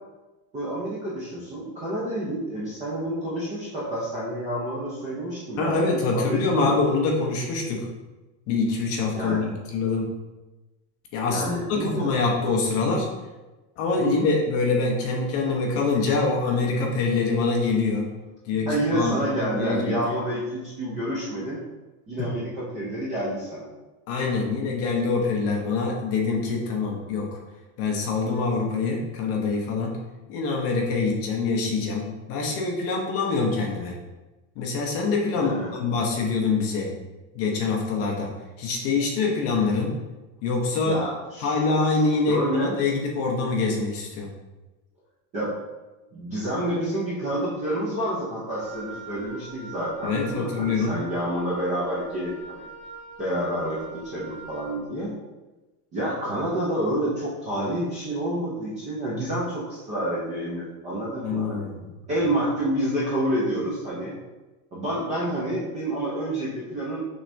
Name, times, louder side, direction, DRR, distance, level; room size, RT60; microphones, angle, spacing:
voice 1, 0.5-6.6 9.2-9.5 11.3-12.1 14.0-14.3 18.7-21.6 22.1-23.7 35.3-35.8 40.8-41.6 42.3-42.8 45.3-45.5 46.1-52.6 53.2-55.1 55.9-61.7 62.1-64.1 64.7-67.0, right 1 dB, 15° right, -7 dB, 0.4 m, -28 dB
voice 2, 5.6-7.9 8.5-10.1 11.1-13.1 13.8-18.1 18.5-20.0 22.2-22.3 24.1-27.3 27.8-30.0 30.3-34.0 34.6-36.9 37.3-38.3 38.6-40.0 40.4-41.0 41.4-44.3 50.0-50.9 61.2-61.8, left 4 dB, 30° left, 0 dB, 0.6 m, -25 dB
Wind instrument woodwind instrument, 48.6-54.8, right 3 dB, 90° right, 1.2 m, -43 dB
6.0 x 3.3 x 2.6 m, 1.1 s
supercardioid pair, 175°, 46 cm